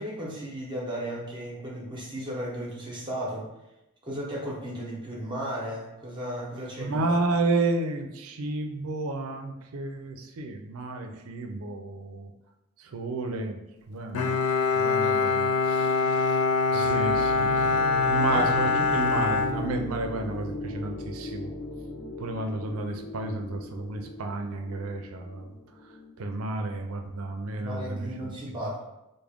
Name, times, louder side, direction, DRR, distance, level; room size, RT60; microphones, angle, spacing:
voice 1, 0.0-3.5 4.0-7.1 15.0-15.1 16.7-17.1 18.3-18.5 27.5-28.8, equal, 20° right, -4 dB, 0.7 m, -35 dB
voice 2, 6.6-12.3 12.8-13.6 13.9-14.4 14.7-16.4 16.7-21.5 22.2-25.5 26.2-28.6, right 2 dB, 90° right, 4 dB, 0.5 m, -32 dB
Bowed string instrument, 14.1-20.3, left 4 dB, 85° left, 0.4 m, -24 dB
sound 1, 17.0-26.1, left 1 dB, 40° left, 0.6 m, -38 dB
3.5 x 2.1 x 3.4 m, 0.95 s
head